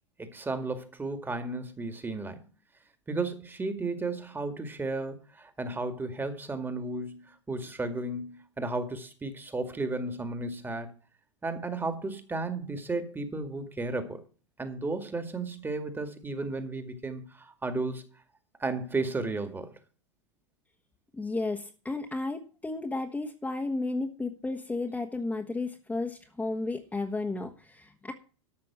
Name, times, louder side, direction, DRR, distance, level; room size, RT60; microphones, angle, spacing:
voice 1, 0.2-2.4 3.1-10.9 11.4-14.2 14.6-18.0 18.6-19.7, right 3 dB, 15° right, 2.0 m, -34 dB
voice 2, 21.1-28.1, left 2 dB, 10° left, 1.4 m, -33 dB
13.5 x 6.0 x 6.1 m
hypercardioid pair, 95°, 16 cm